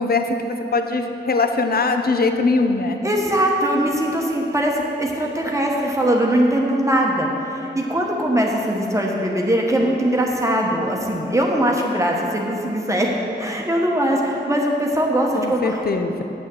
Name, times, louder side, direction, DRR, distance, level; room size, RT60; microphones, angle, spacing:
voice 1, 0.0-3.0 15.3-16.2, left 3 dB, 55° left, 6 dB, 0.7 m, -21 dB
voice 2, 3.0-15.8, right 1 dB, 15° right, -1 dB, 1.1 m, -21 dB
9.0 x 6.3 x 7.6 m, 2.8 s
wide cardioid pair, 110°, 19 cm